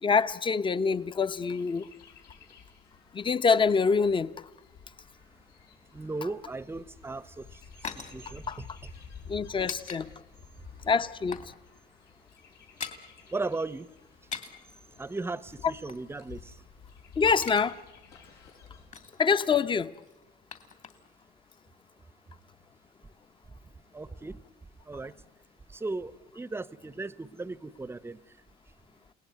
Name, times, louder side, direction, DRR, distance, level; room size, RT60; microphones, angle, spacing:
voice 1, 0.0-1.9 3.1-4.3 8.5-8.6 9.3-10.1 10.8-11.4 17.2-17.8 19.2-19.9, left 5 dB, 30° left, 0.9 m, -25 dB
Chirp tweet, 0.9-18.9, left 5 dB, 90° left, 7.5 m, -52 dB
voice 2, 5.9-8.9 13.3-13.9 15.0-16.6 23.9-24.4 24.9-25.1 25.7-28.2, right 3 dB, 15° right, 0.8 m, -37 dB
sound 1, 7.0-10.0 10.3-10.5 10.8-11.6 11.8-12.0 12.2-13.1 14.1-14.7 15.5-16.9 17.2-17.7 18.0-18.1 18.5-19.3 19.9-21.2 21.5-21.6, left 5 dB, 45° left, 2.6 m, -43 dB
29.5 x 18.0 x 9.5 m
cardioid pair, 110°, 17 cm